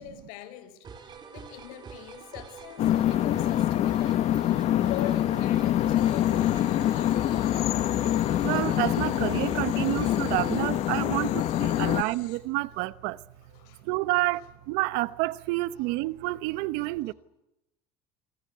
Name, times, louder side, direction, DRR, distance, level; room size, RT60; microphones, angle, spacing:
voice 1, 0.0-7.5 11.7-12.0 13.5-13.8 14.4-14.5 17.0-17.1, left 12 dB, 85° left, 5.2 m, -43 dB
sound 1, 0.8-10.8, right 6 dB, 25° right, 3.9 m, -46 dB
sound 2, 2.8-12.0, left 12 dB, 40° left, 1.0 m, -25 dB
sound 3, 5.9-12.4, left 14 dB, 70° left, 5.1 m, -50 dB
voice 2, 8.4-11.3 11.6-13.1 13.9-14.4 14.7-17.1, right 20 dB, 65° right, 1.0 m, -28 dB
29.0 x 24.0 x 8.0 m
cardioid pair, 170°, 18 cm